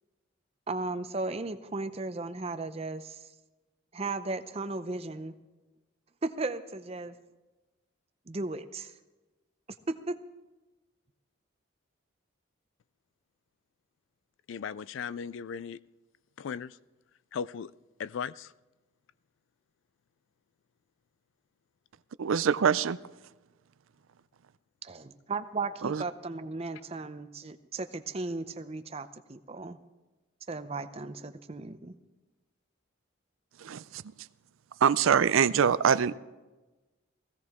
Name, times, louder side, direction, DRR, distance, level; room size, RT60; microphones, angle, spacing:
voice 1, 0.7-3.3 3.9-5.4 6.2-7.2 8.3-8.9 9.9-10.2 24.8-29.8 30.5-31.9, right 3 dB, 30° right, 0.6 m, -36 dB
voice 2, 14.5-15.8 16.4-16.8 17.3-17.7 18.0-18.5, left 7 dB, 70° left, 0.3 m, -37 dB
voice 3, 22.2-23.0 25.8-26.0 33.6-34.0 34.8-36.2, right 7 dB, 80° right, 0.4 m, -24 dB
18.0 x 16.0 x 3.6 m
head